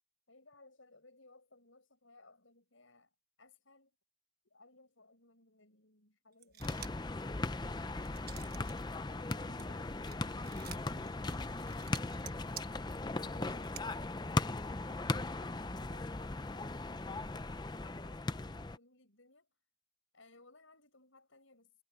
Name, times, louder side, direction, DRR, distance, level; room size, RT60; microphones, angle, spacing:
voice 1, 0.3-3.1 3.4-4.0 4.4-6.8 9.4-10.0 13.0-14.0 14.4-19.5 20.1-21.7, left 2 dB, 70° left, 6.5 m, -63 dB
sound 1, 6.4-7.1 7.5-8.8 9.1-13.8, right 11 dB, 45° right, 1.3 m, -51 dB
sound 2, 6.6-18.8, left 2 dB, 20° left, 0.5 m, -38 dB
voice 2, 9.0-11.9, left 1 dB, 55° left, 5.9 m, -59 dB
head